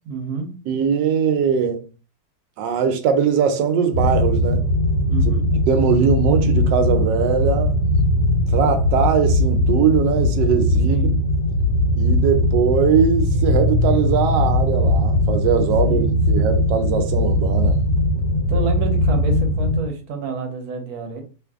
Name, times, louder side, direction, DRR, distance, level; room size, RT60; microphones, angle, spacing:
voice 1, 0.0-0.5 5.1-5.5 10.9-11.1 15.8-16.5 18.5-21.2, right 4 dB, 65° right, 1.1 m, -29 dB
voice 2, 0.7-1.8 2.6-4.7 5.7-7.7 8.5-11.1 12.0-17.8, right 7 dB, 90° right, 1.3 m, -20 dB
sound 1, 3.9-19.8, left 1 dB, 85° left, 1.3 m, -19 dB
2.9 x 2.5 x 3.4 m
omnidirectional pair, 1.8 m